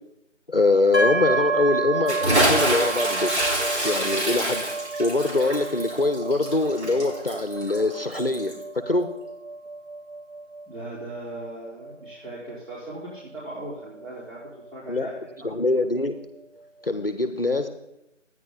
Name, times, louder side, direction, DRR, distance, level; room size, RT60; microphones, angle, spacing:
voice 1, 0.5-3.3 3.8-9.1 14.9-15.1 15.4-16.2 16.8-17.7, left 2 dB, 50° left, 9 dB, 0.6 m, -23 dB
sound 1, 0.9-14.6, right 3 dB, 5° left, 2.6 m, -31 dB
Bathtub (filling or washing) / Splash splatter, 2.1-8.6, right 1 dB, 60° right, 3.2 m, -26 dB
voice 2, 10.7-15.7, right 1 dB, 85° right, -9 dB, 3.9 m, -39 dB
12.0 x 9.4 x 3.9 m, 0.90 s
figure-of-eight pair, 170°, 37 cm